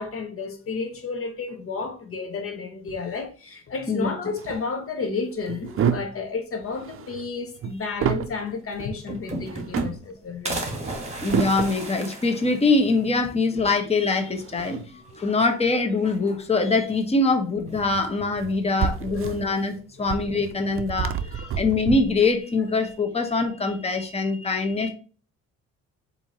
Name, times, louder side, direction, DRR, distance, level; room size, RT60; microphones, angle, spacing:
voice 1, 0.0-11.5 13.5-13.6 14.9-15.3 19.1-19.5 21.2-21.6 24.7-24.9, left 4 dB, 45° left, 0.8 m, -32 dB
voice 2, 3.9-4.3 7.9-8.0 11.2-14.8 15.2-24.9, left 3 dB, 20° left, 0.9 m, -23 dB
sound 1, 4.4-4.6 5.4-6.3 6.5-8.4 8.7-9.0 9.4-10.1 10.9-11.9 14.2-15.1 16.9-17.1 17.7-22.3, right 8 dB, 45° right, 0.5 m, -30 dB
sound 2, 8.5-8.6 8.8-10.1 10.5-13.1 13.5-13.6 13.8-13.9 15.1-15.6 15.9-16.7 17.7-18.3, right 2 dB, 20° right, 1.4 m, -34 dB
4.4 x 2.7 x 4.1 m
cardioid pair, 85°, 30 cm